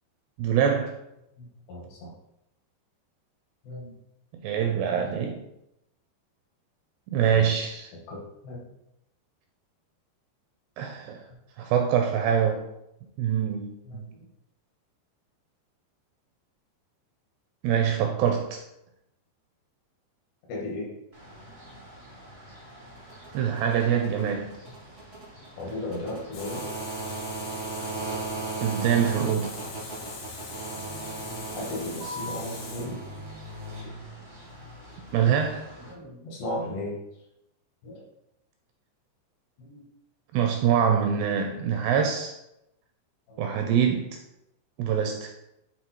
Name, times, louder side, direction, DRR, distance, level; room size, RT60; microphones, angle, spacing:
voice 1, 0.4-1.0 4.4-5.4 7.1-7.9 10.8-11.2 11.6-12.6 13.2-14.1 17.6-18.6 23.3-24.6 28.6-29.5 35.1-35.7 40.3-42.4 43.4-44.2 44.8-45.4, right 8 dB, 80° right, 3 dB, 2.5 m, -24 dB
voice 2, 1.4-2.1 3.6-3.9 7.3-7.5 8.1-8.6 13.9-14.3 20.5-21.0 25.6-26.7 31.5-33.0 35.8-37.0 37.8-38.0 39.6-39.8 43.3-43.4, left 1 dB, 70° left, -3 dB, 4.0 m, -36 dB
sound 1, 21.1-35.9, right 2 dB, 55° right, 0.7 m, -38 dB
Water tap faucet, 26.3-33.3, left 4 dB, 85° left, 4.5 m, -42 dB
9.4 x 3.5 x 4.5 m, 0.84 s
omnidirectional pair, 5.2 m